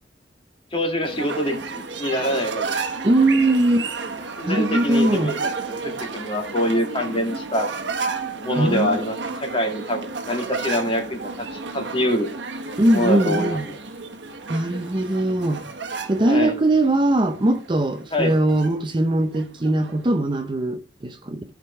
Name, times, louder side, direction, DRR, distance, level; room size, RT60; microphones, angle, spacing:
voice 1, 0.7-1.6 2.0-2.8 4.4-5.4 5.7-7.7 8.4-12.3 12.9-13.8 16.2-16.5 18.1-18.3, equal, 30° left, 2.0 m, -25 dB
sound 1, 1.0-19.9, right 4 dB, 85° right, 1.3 m, -32 dB
voice 2, 3.0-3.9 4.4-5.3 8.6-9.0 12.8-13.6 14.5-15.6 16.1-21.4, right 1 dB, 25° right, 0.7 m, -20 dB
15.0 x 5.2 x 3.1 m
head